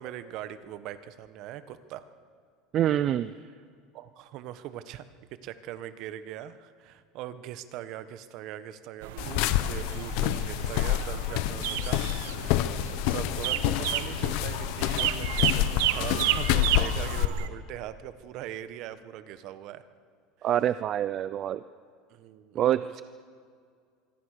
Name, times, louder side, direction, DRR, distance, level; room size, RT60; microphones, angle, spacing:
voice 1, 0.0-2.0 3.9-5.1 5.4-19.8 22.1-23.0, right 12 dB, 55° right, 12 dB, 1.4 m, -41 dB
voice 2, 2.7-3.3 20.4-21.6 22.5-23.0, right 11 dB, 40° right, 14 dB, 0.5 m, -26 dB
sound 1, 9.0-17.5, right 13 dB, 85° right, 1.2 m, -32 dB
sound 2, 9.2-17.3, left 13 dB, 65° left, 1.1 m, -28 dB
25.5 x 23.5 x 6.7 m, 2.2 s
supercardioid pair, 145°, 0 cm